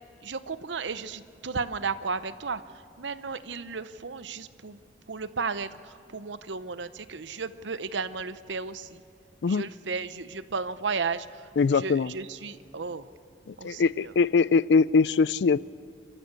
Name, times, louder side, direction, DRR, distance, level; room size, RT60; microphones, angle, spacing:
voice 1, 0.2-4.8 5.1-9.0 9.4-13.1 13.6-14.1, right 4 dB, 90° right, 13 dB, 0.8 m, -34 dB
voice 2, 11.6-12.1 13.5-15.6, left 4 dB, 70° left, 20 dB, 0.4 m, -22 dB
29.0 x 14.5 x 7.0 m, 2.9 s
head